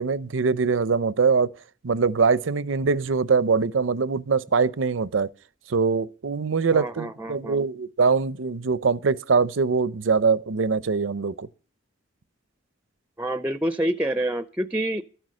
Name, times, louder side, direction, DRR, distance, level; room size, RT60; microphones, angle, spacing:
voice 1, 0.0-1.5 1.8-5.3 5.7-11.5, right 5 dB, 80° right, 0.6 m, -23 dB
voice 2, 6.7-7.6 13.2-15.0, right 1 dB, 10° right, 0.5 m, -27 dB
12.5 x 9.3 x 6.3 m
head